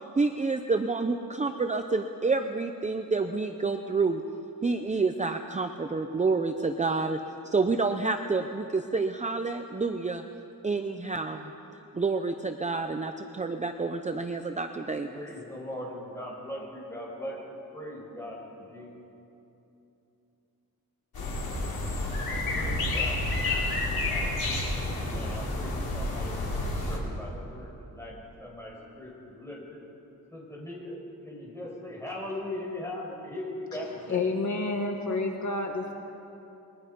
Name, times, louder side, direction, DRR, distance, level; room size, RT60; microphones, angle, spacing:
voice 1, 0.2-4.2 4.6-7.2 7.4-10.2 10.6-11.5 11.9-15.2, right 3 dB, 20° right, 6 dB, 0.6 m, -28 dB
voice 2, 15.1-18.9 22.5-24.3 24.8-29.8 30.3-31.0 31.2-34.2, left 1 dB, 10° left, -4 dB, 5.5 m, -40 dB
sound 1, 21.1-27.0, left 2 dB, 85° left, 4.6 m, -30 dB
voice 3, 34.1-35.9, left 3 dB, 55° left, 2 dB, 1.7 m, -29 dB
28.5 x 22.0 x 5.4 m, 3.0 s
wide cardioid pair, 180°, 35 cm